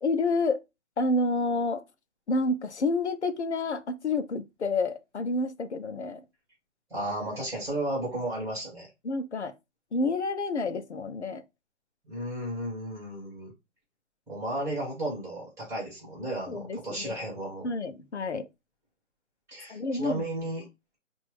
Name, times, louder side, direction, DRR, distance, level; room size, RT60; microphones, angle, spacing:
voice 1, 0.0-0.6 1.0-1.8 2.3-6.2 9.0-9.5 9.9-11.4 16.5-17.2 17.6-18.4 19.7-20.2, left 2 dB, 60° left, 0.8 m, -29 dB
voice 2, 6.9-8.9 12.1-13.5 14.3-17.7 19.5-20.7, right 1 dB, 5° right, 2.3 m, -34 dB
5.7 x 2.7 x 3.3 m
figure-of-eight pair, 135°, 38 cm